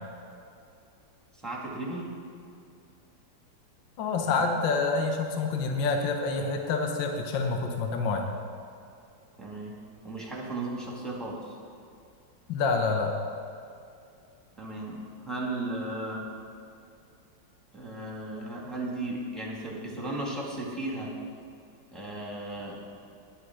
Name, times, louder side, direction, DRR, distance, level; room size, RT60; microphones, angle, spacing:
voice 1, 1.4-2.1 9.4-9.8 10.0-11.5 14.6-16.3 17.7-21.2 21.9-22.8, right 2 dB, ahead, -4 dB, 2.2 m, -35 dB
voice 2, 4.0-8.3 12.5-13.1, left 4 dB, 70° left, 3 dB, 1.7 m, -27 dB
10.5 x 9.9 x 6.2 m, 2.5 s
omnidirectional pair, 2.2 m